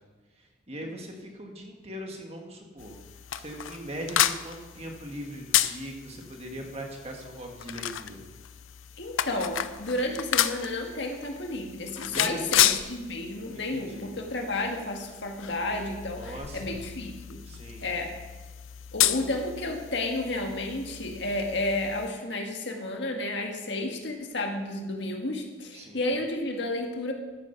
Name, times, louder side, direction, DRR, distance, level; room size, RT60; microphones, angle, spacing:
voice 1, 0.4-3.0 3.3-8.2 12.0-12.6 13.5-14.1 16.2-16.7 17.4-17.9 25.7-26.1, equal, 30° right, 2 dB, 1.8 m, -40 dB
sound 1, 2.8-22.1, left 12 dB, 80° left, 0.5 m, -32 dB
voice 2, 9.0-17.4 17.8-18.2 18.9-27.1, left 2 dB, 60° left, 2 dB, 1.7 m, -32 dB
13.5 x 9.0 x 5.8 m, 1.3 s
head